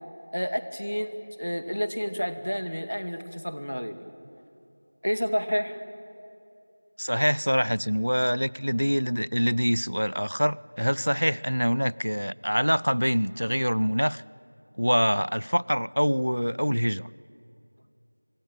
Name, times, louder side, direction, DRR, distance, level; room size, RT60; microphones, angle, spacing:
voice 1, 0.3-4.0 5.0-5.8, equal, 80° left, 2.1 m, -30 dB
voice 2, 7.0-14.2 14.8-17.1, equal, 90° right, 0.5 m, -25 dB
24.0 x 23.5 x 9.0 m
figure-of-eight pair, 175°, 0 cm